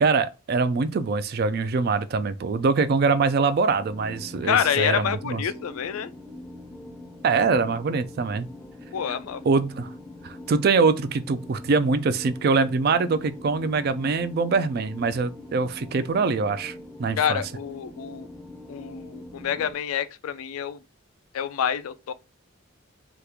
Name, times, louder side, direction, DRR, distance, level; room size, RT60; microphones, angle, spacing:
voice 1, 0.0-5.4 7.2-8.5 9.5-9.9 10.2-16.7 17.0-17.4, right 4 dB, 45° right, 0.3 m, -23 dB
sound 1, 3.7-19.7, left 1 dB, 5° left, 0.5 m, -43 dB
voice 2, 4.4-6.1 8.9-9.4 17.2-18.3 18.7-20.8 21.3-22.1, left 8 dB, 85° left, 0.3 m, -27 dB
2.9 x 2.4 x 3.4 m
head